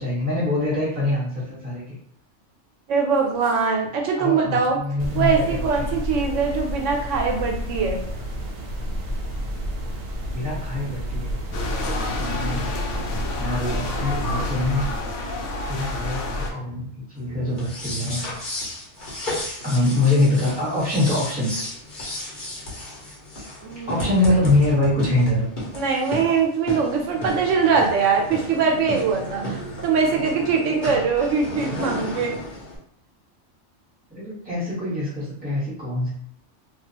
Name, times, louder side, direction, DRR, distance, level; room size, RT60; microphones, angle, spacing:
voice 1, 0.0-1.9 4.2-6.0 10.3-11.4 12.2-12.7 13.3-14.8 15.7-18.3 19.6-21.6 22.2-22.3 23.7-25.5 34.1-36.1, left 2 dB, 10° right, -8 dB, 1.1 m, -24 dB
voice 2, 2.9-4.8 5.1-8.0 23.6-24.1 25.7-32.3, right 5 dB, 85° right, 1 dB, 1.0 m, -22 dB
sound 1, 5.0-15.0, equal, 60° right, 0.7 m, -30 dB
sound 2, 11.5-16.5, left 2 dB, 80° left, 0.9 m, -29 dB
sound 3, 17.5-32.8, left 1 dB, 45° left, 0.9 m, -33 dB
2.4 x 2.3 x 2.8 m, 0.64 s
omnidirectional pair, 1.2 m